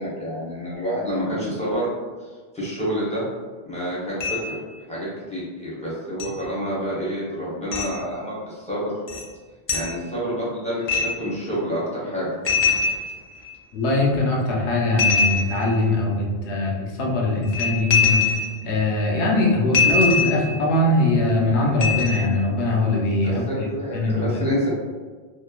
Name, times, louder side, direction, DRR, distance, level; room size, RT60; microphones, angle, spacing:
voice 1, 0.0-1.9 2.2-2.3 2.5-3.2 3.7-4.6 4.9-8.9 9.7-12.3 23.2-24.7, equal, 5° left, -8 dB, 0.6 m, -28 dB
sound 1, 4.2-4.6 6.2-6.3 7.7-7.9 9.1-9.2 9.7-9.9 10.9-11.3 12.4-13.5 15.0-15.8 17.4-18.7 19.7-20.6 21.8-22.3, left 5 dB, 50° left, 0.3 m, -22 dB
voice 2, 13.7-18.2 18.6-23.4 23.9-24.3, left 2 dB, 75° left, -1 dB, 0.9 m, -21 dB
2.9 x 2.1 x 2.3 m, 1.4 s
omnidirectional pair, 1.1 m